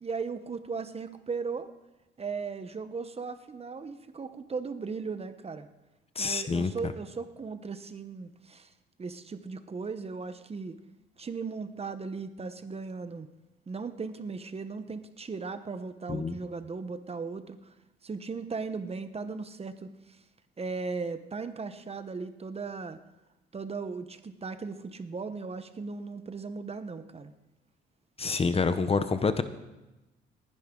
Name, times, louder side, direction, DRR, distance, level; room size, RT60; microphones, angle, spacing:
voice 1, 0.0-1.7 2.2-5.7 6.2-8.7 9.0-10.8 11.2-13.3 13.7-17.6 18.0-20.2 20.6-23.0 23.5-27.3, right 4 dB, 30° right, 11 dB, 0.9 m, -37 dB
voice 2, 6.2-6.7 16.1-16.3 28.2-29.4, left 4 dB, 30° left, 11 dB, 0.8 m, -27 dB
19.0 x 11.0 x 3.8 m, 1.0 s
cardioid pair, 90°, 20 cm